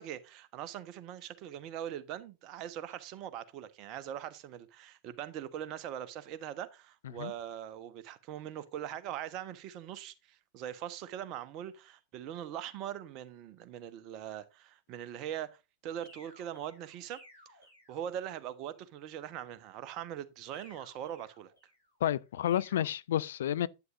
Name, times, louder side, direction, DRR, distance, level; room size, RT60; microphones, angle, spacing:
voice 1, 0.0-17.2 17.9-21.5, right 10 dB, 40° right, 1.1 m, -41 dB
sound 1, 16.0-18.5 20.5-21.9 22.5-22.9, left 1 dB, 85° left, 7.3 m, -58 dB
voice 2, 22.0-23.7, left 11 dB, 60° left, 0.5 m, -30 dB
11.0 x 9.5 x 2.5 m
figure-of-eight pair, 90°, 0 cm